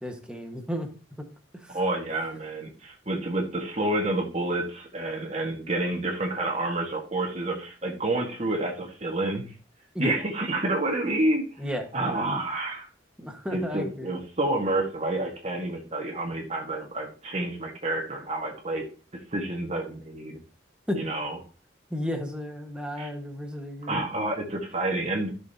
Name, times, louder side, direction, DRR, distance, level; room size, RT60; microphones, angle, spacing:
voice 1, 0.0-0.9 1.6-1.8 9.9-10.1 11.6-11.9 13.2-14.1 20.9-21.0 21.9-24.0, equal, 5° right, 3 dB, 1.4 m, -33 dB
voice 2, 1.7-9.5 10.0-11.4 11.9-12.9 13.5-18.8 19.3-20.4 20.9-21.4 23.0-23.1 23.9-25.3, right 2 dB, 35° right, 1 dB, 1.5 m, -29 dB
14.0 x 6.4 x 2.8 m, 0.38 s
head